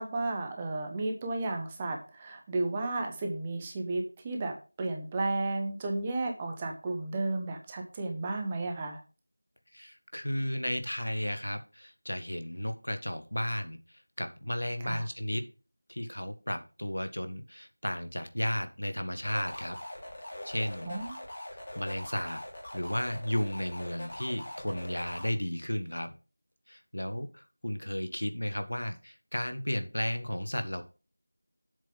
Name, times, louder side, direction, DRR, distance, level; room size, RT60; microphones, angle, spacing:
voice 1, 0.0-9.0 14.8-15.0 20.8-21.2, right 2 dB, 10° right, 2 dB, 1.0 m, -33 dB
voice 2, 9.7-15.5 15.9-19.8 20.4-20.9 21.5-22.4 22.7-26.1 26.7-30.8, equal, 80° left, 8 dB, 1.7 m, -34 dB
sound 1, 19.2-25.3, left 1 dB, 30° left, 3.2 m, -42 dB
7.5 x 6.9 x 5.7 m, 0.34 s
figure-of-eight pair, 175°, 0 cm